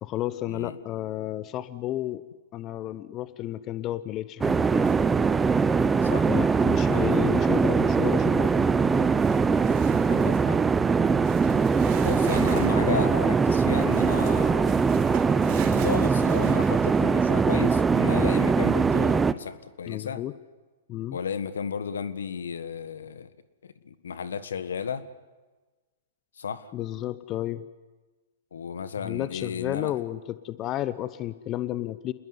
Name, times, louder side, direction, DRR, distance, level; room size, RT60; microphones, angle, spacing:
voice 1, 0.0-2.2 2.5-4.9 6.3-9.1 19.9-20.3 20.9-21.2 26.7-27.7 29.0-32.1, left 13 dB, 30° left, 15 dB, 0.9 m, -32 dB
sound 1, 4.4-19.3, right 5 dB, 15° right, 0.8 m, -22 dB
sound 2, 4.8-5.3 5.7-6.1 9.2-10.5 11.2-12.9 13.6-17.4, right 9 dB, 45° right, 4.1 m, -42 dB
voice 2, 10.1-10.6 12.0-14.7 15.5-20.2 21.1-23.3 23.6-25.1 26.4-26.7 28.5-30.0, left 6 dB, 75° left, 13 dB, 1.6 m, -33 dB
27.5 x 20.5 x 9.8 m, 1.3 s
hypercardioid pair, 115°, 0 cm